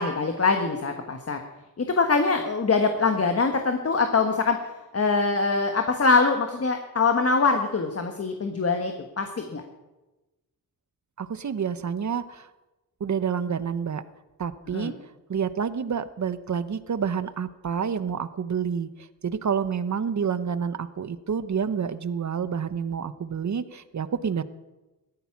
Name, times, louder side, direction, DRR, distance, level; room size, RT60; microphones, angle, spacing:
voice 1, 0.0-1.4 1.8-4.6 4.9-9.6 14.7-14.9, left 4 dB, 40° left, 5 dB, 1.4 m, -23 dB
voice 2, 11.2-12.5 13.0-14.0 14.4-14.9 15.3-18.9 19.2-24.4, right 7 dB, 50° right, 13 dB, 0.9 m, -28 dB
17.0 x 13.5 x 6.0 m, 1.1 s
wide cardioid pair, 110°, 36 cm